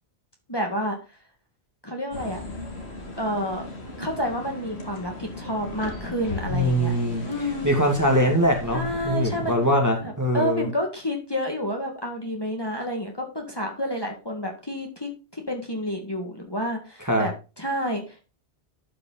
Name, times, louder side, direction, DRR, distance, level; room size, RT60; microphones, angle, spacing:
voice 1, 0.5-1.0 1.8-2.4 3.2-3.6 4.0-7.0 7.2-7.7 8.7-9.6 10.0-18.2, equal, 20° left, 1 dB, 2.0 m, -29 dB
sound 1, 2.1-9.5, left 2 dB, 75° left, 2.4 m, -37 dB
voice 2, 6.5-7.2 7.6-10.7 17.0-17.3, equal, 15° right, 1 dB, 2.2 m, -22 dB
12.0 x 5.7 x 4.0 m, 0.31 s
omnidirectional pair, 1.1 m